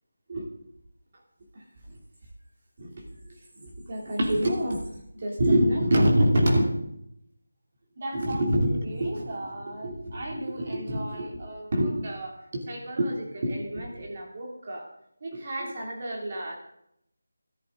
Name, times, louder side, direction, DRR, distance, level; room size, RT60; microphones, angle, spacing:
voice 1, 1.5-2.0 2.8-2.9 3.6-6.9 8.0-14.9 15.2-16.5, equal, 25° right, 0 dB, 2.8 m, -27 dB
15.0 x 13.5 x 3.9 m, 0.75 s
figure-of-eight pair, 180°, 0 cm